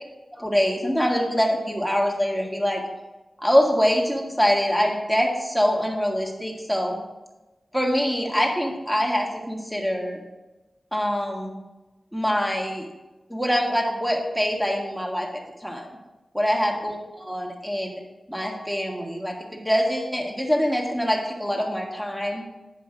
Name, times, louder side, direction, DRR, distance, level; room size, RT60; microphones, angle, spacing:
voice 1, 0.3-2.8 3.4-7.0 7.7-10.2 10.9-11.6 12.1-12.9 13.3-15.9 16.3-18.0 18.3-22.4, equal, ahead, 0 dB, 1.6 m, -24 dB
10.5 x 5.2 x 4.9 m, 1.1 s
wide cardioid pair, 95°, 0 cm